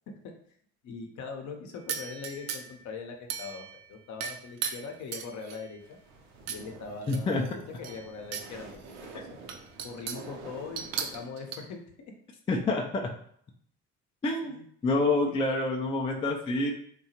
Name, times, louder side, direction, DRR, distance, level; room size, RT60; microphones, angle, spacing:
voice 1, 0.8-6.0 6.5-8.7 9.1-9.4 9.8-12.1 14.4-14.6 15.1-15.3, left 5 dB, 50° left, 4 dB, 0.7 m, -41 dB
sound 1, 1.9-2.8 3.3-3.8 4.2-5.7 6.5-6.6 7.0-8.5 8.9-9.0 9.5-10.3 10.8-11.6, right 7 dB, 45° right, 0.4 m, -37 dB
sound 2, 5.8-11.2, right 4 dB, 85° right, 0.6 m, -48 dB
voice 2, 7.1-7.4 12.5-13.1 14.2-14.6 14.8-16.7, left 2 dB, 15° left, 0 dB, 0.3 m, -27 dB
2.7 x 2.2 x 2.8 m, 0.65 s
hypercardioid pair, 70°, 36 cm